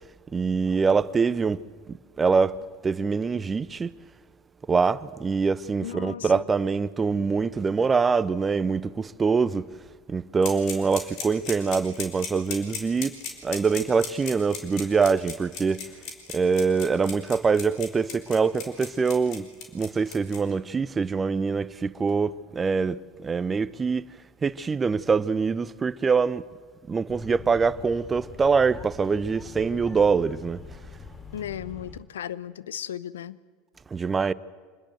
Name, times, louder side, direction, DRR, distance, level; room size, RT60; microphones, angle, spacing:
voice 1, 0.3-1.6 1.9-3.9 4.7-9.7 10.1-13.1 13.4-15.8 16.3-19.5 19.7-24.1 24.4-26.4 26.9-30.6 33.9-34.3, right 5 dB, 25° right, 0.9 m, -24 dB
voice 2, 5.8-6.4 31.3-33.4, left 10 dB, 80° left, 0.7 m, -35 dB
sound 1, 10.4-20.4, left 6 dB, 55° left, 4.7 m, -35 dB
sound 2, 27.1-32.0, left 4 dB, 30° left, 2.8 m, -43 dB
26.0 x 20.5 x 7.9 m
hypercardioid pair, 75°, 0 cm